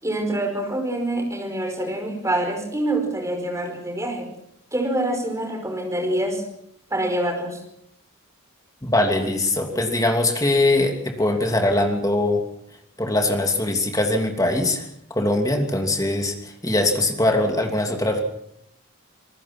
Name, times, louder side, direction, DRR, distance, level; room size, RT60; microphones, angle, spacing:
voice 1, 0.0-4.3 4.7-6.4 6.9-7.6, right 1 dB, 15° right, 3 dB, 5.2 m, -25 dB
voice 2, 8.8-12.4 13.0-18.2, left 2 dB, 15° left, 3 dB, 2.9 m, -22 dB
27.0 x 19.5 x 6.0 m, 0.73 s
head